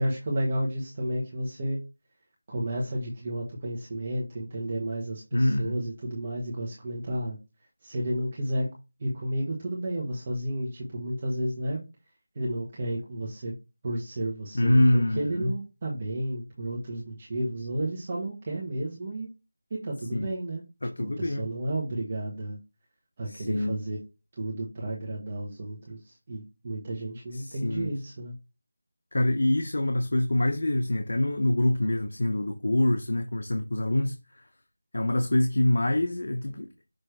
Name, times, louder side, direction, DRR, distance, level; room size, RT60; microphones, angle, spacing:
voice 1, 0.0-1.8 2.5-7.4 7.8-8.7 9.0-11.8 12.3-13.5 13.8-19.3 19.7-20.6 21.0-22.6 23.2-24.0 24.3-28.3, right 1 dB, 25° right, 1.5 m, -32 dB
voice 2, 5.3-5.8 14.5-15.5 20.1-20.3 20.8-21.4 23.3-23.8 27.3-27.9 29.1-34.5 34.9-36.7, left 1 dB, 60° left, 0.8 m, -25 dB
6.5 x 3.1 x 4.7 m
figure-of-eight pair, 175°, 0 cm